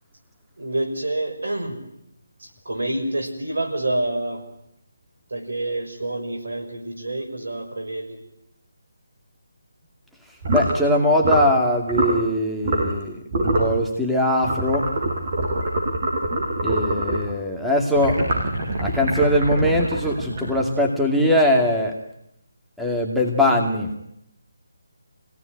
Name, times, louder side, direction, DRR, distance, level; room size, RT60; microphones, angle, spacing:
voice 1, 0.6-1.8 2.4-4.4 5.3-8.2, right 1 dB, 70° right, 4 dB, 6.2 m, -27 dB
sound 1, 10.4-10.8 11.2-11.5 11.9-12.2 12.6-13.0 13.3-13.7 14.4-17.3 18.0-20.8, right 1 dB, 40° right, 7.6 m, -24 dB
voice 2, 10.5-14.9 16.6-18.2 18.8-21.9 22.8-23.9, left 1 dB, ahead, -2 dB, 2.4 m, -21 dB
25.5 x 18.0 x 9.4 m, 0.79 s
figure-of-eight pair, 155°, 0 cm